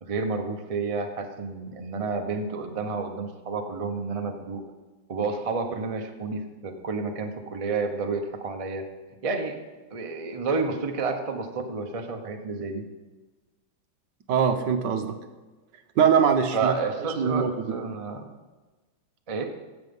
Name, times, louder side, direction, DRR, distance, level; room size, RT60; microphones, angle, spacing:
voice 1, 0.0-4.6 5.1-8.8 9.2-9.5 9.9-12.8 16.5-18.3 19.3-19.4, right 4 dB, 40° right, 4 dB, 0.4 m, -30 dB
voice 2, 14.3-15.2 16.0-16.7 17.2-17.5, right 7 dB, 65° right, 7 dB, 1.4 m, -22 dB
16.0 x 6.3 x 5.4 m, 1.2 s
omnidirectional pair, 2.3 m